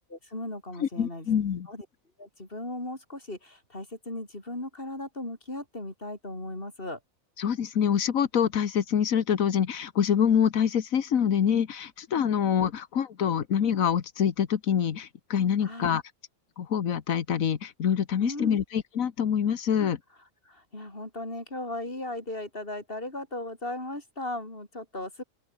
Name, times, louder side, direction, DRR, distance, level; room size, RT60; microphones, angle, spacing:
voice 1, 0.1-1.3 1.7-1.9 2.2-7.0 15.6-16.0 18.2-18.6 19.8-19.9 20.5-25.2, left 1 dB, 40° left, 5.7 m, -37 dB
voice 2, 0.8-1.7 7.4-16.0 16.6-20.0, left 8 dB, 75° left, 1.6 m, -25 dB
open air
omnidirectional pair, 1.4 m